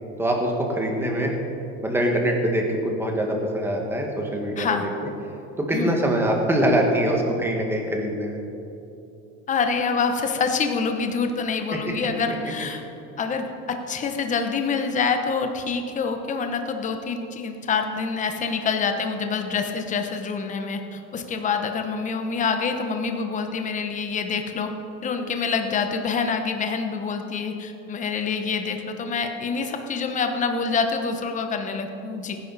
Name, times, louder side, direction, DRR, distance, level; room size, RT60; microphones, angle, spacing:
voice 1, 0.2-1.3 1.8-4.9 5.6-8.4 11.7-11.8, right 1 dB, 5° right, 0 dB, 1.7 m, -23 dB
voice 2, 9.5-12.8 13.2-24.7 25.0-32.4, left 5 dB, 25° left, 5 dB, 1.0 m, -26 dB
17.5 x 10.5 x 4.2 m, 2.8 s
cardioid pair, 150°, 30 cm